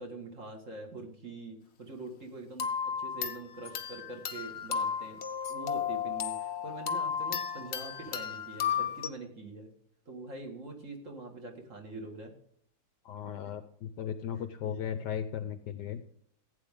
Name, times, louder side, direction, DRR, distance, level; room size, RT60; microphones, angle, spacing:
voice 1, 0.0-2.7 3.0-5.2 5.5-9.7 10.1-12.3 14.6-15.0, right 2 dB, 40° right, 2 dB, 2.2 m, -44 dB
sound 1, 2.6-9.1, left 7 dB, 50° left, 0.7 m, -34 dB
voice 2, 13.0-16.0, left 9 dB, 70° left, 11 dB, 1.1 m, -36 dB
15.5 x 8.8 x 3.7 m, 0.68 s
omnidirectional pair, 2.2 m